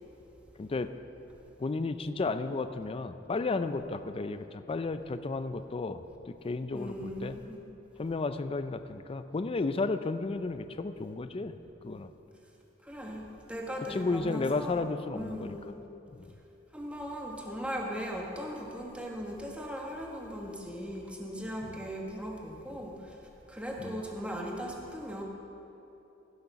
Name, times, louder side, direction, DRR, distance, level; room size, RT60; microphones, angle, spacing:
voice 1, 0.6-0.9 1.6-7.3 8.0-11.5 11.8-12.1 13.9-15.6 16.1-16.3 21.7-21.8 23.8-24.0, left 3 dB, 30° left, 10 dB, 0.4 m, -33 dB
voice 2, 6.7-7.6 12.8-14.8 15.1-15.7 16.7-23.1 23.5-25.2, equal, 5° right, -1 dB, 1.1 m, -38 dB
16.5 x 6.5 x 5.8 m, 2.9 s
head